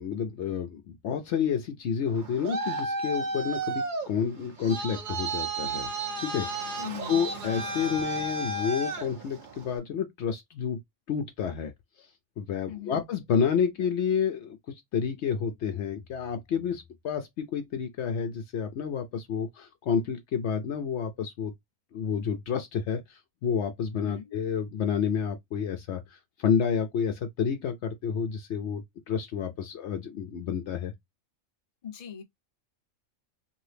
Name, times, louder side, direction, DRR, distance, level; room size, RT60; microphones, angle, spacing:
voice 1, 0.0-5.9 6.2-6.5 7.1-10.8 11.1-11.7 12.4-14.6 14.9-21.5 21.9-23.0 23.4-26.0 26.4-28.8 29.1-30.9, left 7 dB, 65° left, 0.8 m, -29 dB
Traffic noise roadway noise, 2.1-9.8, right 2 dB, 50° right, 0.7 m, -33 dB
voice 2, 6.8-7.2 12.7-13.0 24.0-24.4 31.8-32.2, left 8 dB, 35° left, 0.7 m, -40 dB
2.7 x 2.6 x 3.3 m
omnidirectional pair, 1.3 m